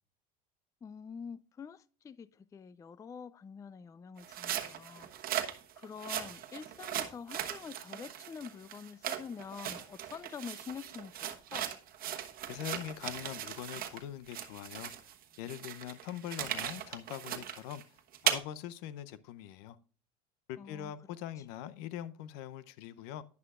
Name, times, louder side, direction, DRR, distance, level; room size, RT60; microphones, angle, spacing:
voice 1, 0.8-11.7 20.6-20.9, left 6 dB, 15° left, 0.3 m, -46 dB
sound 1, 4.2-14.0 14.3-18.4, right 10 dB, 45° right, 1.2 m, -38 dB
voice 2, 12.4-14.9 15.4-17.8 18.2-19.8 20.5-23.2, left 11 dB, 75° left, 0.7 m, -42 dB
11.0 x 9.6 x 2.4 m
supercardioid pair, 100°, 21 cm